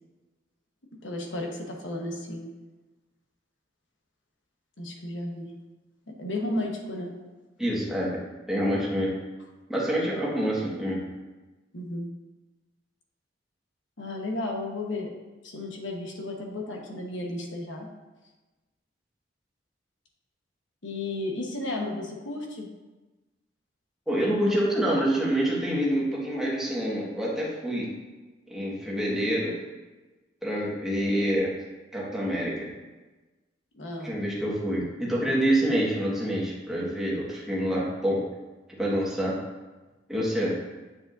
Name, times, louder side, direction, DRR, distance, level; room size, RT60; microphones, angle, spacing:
voice 1, 1.0-2.5 4.8-5.5 6.1-7.1 11.7-12.1 14.0-15.1 15.4-17.9 20.8-22.7 33.7-34.1, left 2 dB, 90° left, 0 dB, 1.2 m, -33 dB
voice 2, 7.6-9.1 9.7-11.0 24.1-27.9 28.5-29.5 30.4-31.5 31.9-32.7 34.0-38.2 38.8-39.4 40.1-40.5, equal, 5° right, -6 dB, 1.6 m, -27 dB
7.4 x 7.1 x 2.6 m, 1.2 s
head